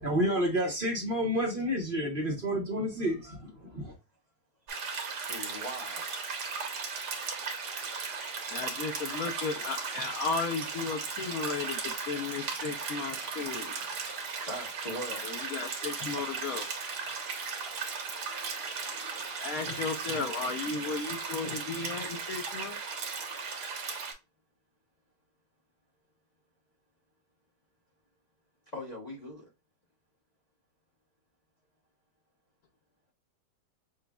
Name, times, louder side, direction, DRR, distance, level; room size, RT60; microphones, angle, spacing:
voice 1, 0.0-3.9, equal, 35° right, 1.0 m, -30 dB
sound 1, 4.7-24.1, right 5 dB, 70° right, 1.6 m, -36 dB
voice 2, 5.1-6.1 9.6-9.7 11.1-11.3 12.0-12.2 12.5-12.8 13.2-15.4 28.7-29.5, equal, 35° left, 0.8 m, -43 dB
voice 3, 8.5-13.8 15.2-16.7 19.4-22.8, left 4 dB, 65° left, 1.0 m, -35 dB
6.0 x 2.4 x 2.2 m
omnidirectional pair, 1.8 m